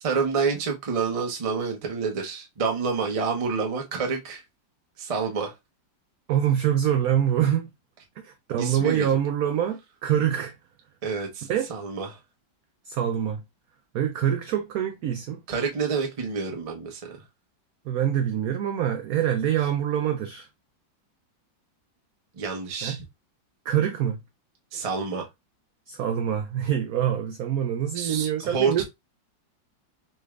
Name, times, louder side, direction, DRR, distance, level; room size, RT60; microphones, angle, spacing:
voice 1, 0.0-4.4 5.0-5.5 8.6-9.1 11.0-12.1 15.5-17.2 22.4-23.0 24.7-25.3 27.9-28.8, right 5 dB, 70° right, 0.3 m, -28 dB
voice 2, 6.3-7.7 8.2-10.5 11.5-11.7 12.9-13.4 13.9-15.4 17.9-20.5 22.8-23.0 23.7-24.2 25.9-28.8, right 10 dB, 90° right, 0.7 m, -25 dB
4.0 x 3.2 x 2.4 m
omnidirectional pair, 2.1 m